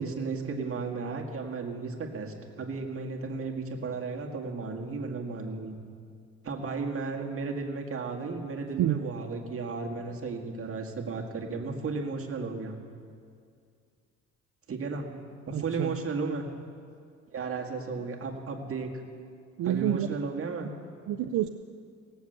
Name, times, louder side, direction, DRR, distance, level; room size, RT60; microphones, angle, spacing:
voice 1, 0.0-5.8 6.4-12.8 14.7-15.1 15.5-16.5 17.3-18.9 19.6-20.7, right 4 dB, 45° right, 1 dB, 1.9 m, -34 dB
voice 2, 15.5-15.9 19.6-20.1 21.1-21.5, right 11 dB, 75° right, 8 dB, 0.6 m, -28 dB
18.5 x 7.2 x 8.0 m, 2.2 s
cardioid pair, 90°, 30 cm